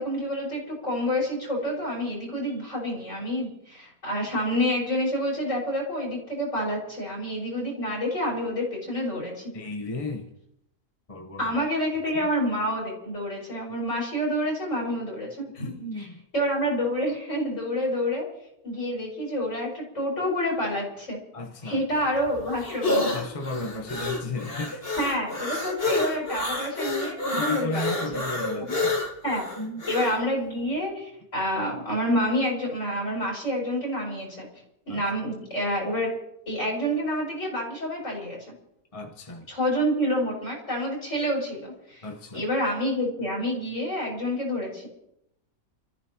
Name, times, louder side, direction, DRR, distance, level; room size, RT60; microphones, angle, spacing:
voice 1, 0.0-9.5 11.4-15.7 16.0-16.1 16.3-18.3 18.6-21.2 21.6-23.0 25.0-28.0 28.7-28.8 29.2-29.4 29.9-34.5 34.9-36.1 36.5-38.4 39.5-42.1 42.3-44.9, equal, 60° left, -3 dB, 5.9 m, -28 dB
voice 2, 9.5-10.3 11.1-11.5 12.1-12.3 15.5-16.2 21.3-21.8 23.1-24.9 27.3-29.0 29.6-29.9 34.9-35.0 38.9-39.5 42.0-42.4, left 2 dB, 25° left, 2 dB, 1.2 m, -34 dB
sound 1, 21.9-30.2, left 2 dB, 45° left, 2.2 m, -29 dB
29.5 x 14.5 x 3.0 m, 0.80 s
omnidirectional pair, 1.4 m